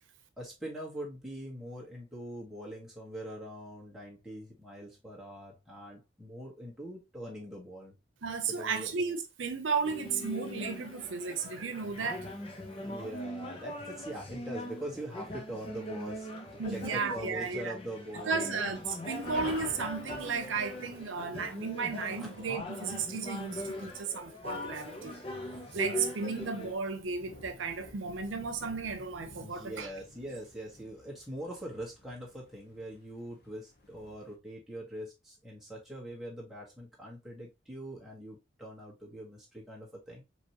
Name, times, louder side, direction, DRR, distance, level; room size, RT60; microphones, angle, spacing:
voice 1, 0.4-7.9 8.5-8.9 12.8-16.3 16.7-18.8 22.0-22.3 29.4-40.2, right 1 dB, ahead, 1.6 m, -43 dB
voice 2, 8.2-12.3 16.6-17.7 18.3-25.2 25.7-29.9, right 5 dB, 80° right, 0.7 m, -34 dB
sound 1, 9.8-26.7, left 1 dB, 30° left, 0.8 m, -41 dB
Thunder, 16.9-17.0 17.3-17.4 18.1-34.4, left 1 dB, 55° left, 1.0 m, -52 dB
4.9 x 3.1 x 2.9 m
head